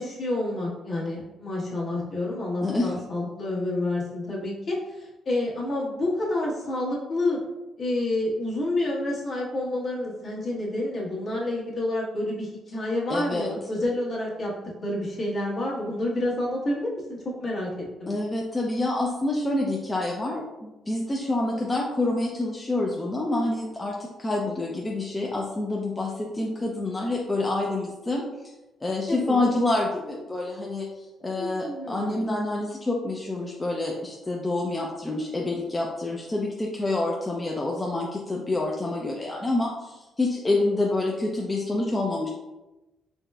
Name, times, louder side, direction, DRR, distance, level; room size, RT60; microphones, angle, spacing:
voice 1, 0.0-7.4 7.8-14.5 14.8-18.1 29.1-29.5 31.3-32.2, left 1 dB, 50° left, -5 dB, 1.2 m, -29 dB
voice 2, 2.6-2.9 13.1-13.5 18.1-20.4 20.9-28.5 28.8-30.9 31.2-42.3, left 2 dB, 20° left, -2 dB, 0.5 m, -27 dB
4.0 x 3.2 x 2.3 m, 1.0 s
cardioid pair, 90°, 0 cm